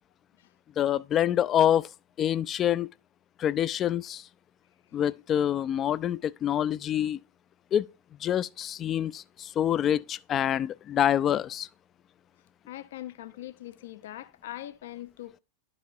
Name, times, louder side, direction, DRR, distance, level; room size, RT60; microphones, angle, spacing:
voice 1, 0.8-1.9 2.2-2.9 3.4-4.2 4.9-7.2 7.7-7.9 8.2-11.7, left 10 dB, 30° left, 0.3 m, -26 dB
voice 2, 12.7-15.4, left 14 dB, 55° left, 0.7 m, -42 dB
12.0 x 4.9 x 2.6 m
figure-of-eight pair, 90°, 0 cm